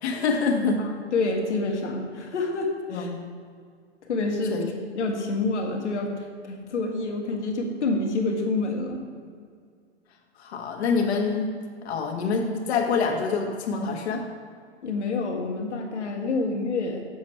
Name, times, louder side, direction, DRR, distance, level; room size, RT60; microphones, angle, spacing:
voice 1, 0.0-0.9 2.9-3.2 4.5-4.6 10.4-11.5 11.8-14.2, left 4 dB, 65° left, 1 dB, 1.6 m, -26 dB
voice 2, 0.8-3.1 4.1-4.6 4.9-9.0 14.8-17.0, left 3 dB, 80° left, 2 dB, 1.7 m, -27 dB
7.6 x 7.3 x 4.5 m, 2.1 s
hypercardioid pair, 120°, 34 cm